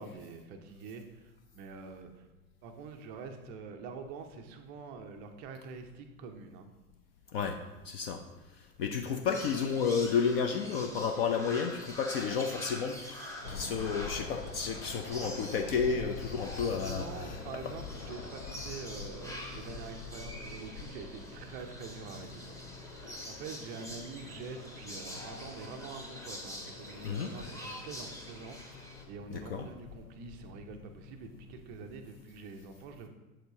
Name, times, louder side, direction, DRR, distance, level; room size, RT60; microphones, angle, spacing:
voice 1, 0.0-2.3 2.6-6.7 16.8-22.5 22.8-33.1, right 5 dB, 20° right, 5 dB, 0.4 m, -46 dB
voice 2, 7.8-8.2 8.8-17.4 27.0-27.3 29.3-29.7, left 6 dB, 40° left, 5 dB, 0.5 m, -32 dB
sound 1, 9.3-29.0, left 1 dB, 5° left, 0.9 m, -46 dB
sound 2, 13.4-32.0, left 4 dB, 65° left, 1.3 m, -46 dB
7.5 x 6.7 x 2.8 m, 1.2 s
figure-of-eight pair, 95°, 45 cm